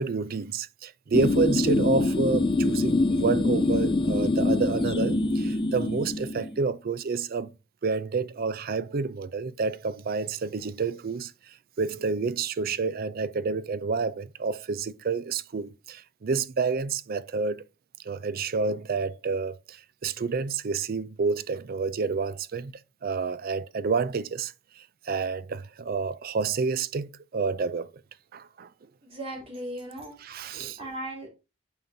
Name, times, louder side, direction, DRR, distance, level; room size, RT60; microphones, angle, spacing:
voice 1, 0.0-7.5 7.8-17.6 18.0-27.9 28.3-28.7 30.2-30.8, right 4 dB, 50° right, 0.4 m, -29 dB
sound 1, 1.1-6.6, left 2 dB, 25° left, 0.4 m, -25 dB
voice 2, 29.0-31.3, right 1 dB, 30° right, 3.7 m, -38 dB
9.2 x 5.6 x 2.7 m
head